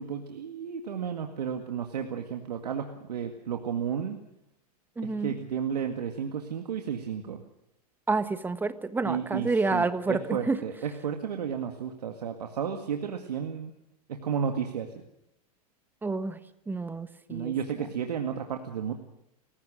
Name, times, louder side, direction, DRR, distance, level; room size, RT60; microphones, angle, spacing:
voice 1, 0.0-4.2 5.0-7.4 9.0-13.7 14.1-14.9 17.3-18.9, right 7 dB, 80° right, 4 dB, 2.0 m, -32 dB
voice 2, 5.0-5.3 8.1-10.6 16.0-16.4 16.7-17.5, right 3 dB, 10° right, 11 dB, 1.4 m, -29 dB
29.0 x 16.0 x 6.5 m, 0.81 s
hypercardioid pair, 115°, 20 cm